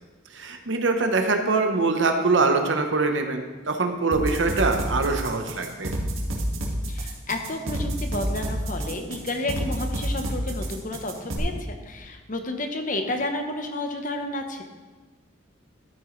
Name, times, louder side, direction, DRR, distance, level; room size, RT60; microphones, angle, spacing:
voice 1, 0.3-5.9, right 3 dB, 65° right, 5 dB, 0.9 m, -23 dB
sound 1, 4.1-11.4, right 1 dB, 90° right, 1.9 m, -28 dB
voice 2, 6.9-14.6, left 2 dB, 40° left, 5 dB, 0.9 m, -31 dB
12.5 x 8.7 x 3.2 m, 1.3 s
head